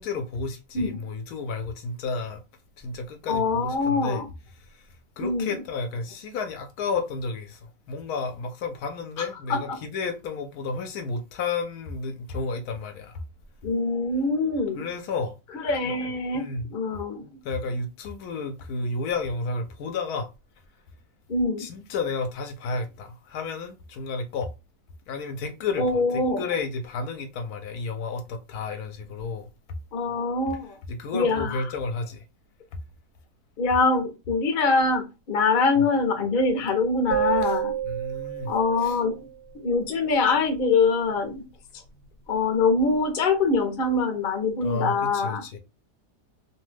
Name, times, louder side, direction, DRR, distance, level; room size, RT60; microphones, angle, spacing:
voice 1, 0.0-2.4 2.8-4.2 4.5-13.2 14.7-15.4 15.8-15.9 16.3-16.7 17.4-20.3 21.6-24.5 25.1-29.5 30.9-32.2 35.8-35.9 37.4-37.5 37.8-38.5 38.8-39.0 44.6-45.6, left 4 dB, 75° left, 1.0 m, -32 dB
voice 2, 3.3-4.2 5.2-5.5 9.2-9.3 9.5-9.8 13.6-14.8 15.6-17.3 21.3-21.7 25.8-26.4 29.9-30.8 31.1-31.6 33.6-37.7 38.4-39.2 39.5-41.4 42.3-45.4, left 3 dB, 50° left, 0.6 m, -24 dB
sound 1, 37.1-39.4, right 11 dB, 85° right, 1.2 m, -29 dB
2.7 x 2.2 x 3.2 m
omnidirectional pair, 1.7 m